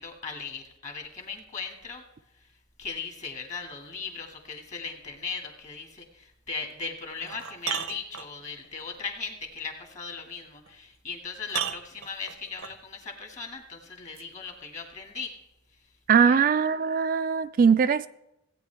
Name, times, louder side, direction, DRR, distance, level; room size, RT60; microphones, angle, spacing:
voice 1, 0.0-2.0 2.8-15.3 16.3-16.4, left 5 dB, 35° left, 2.0 m, -38 dB
sound 1, 6.6-6.7 7.2-8.7 10.7-10.8 11.5-12.8 14.1-14.2, right 9 dB, 70° right, 0.7 m, -34 dB
voice 2, 16.1-18.1, right 6 dB, 45° right, 0.3 m, -21 dB
16.5 x 9.1 x 3.4 m
head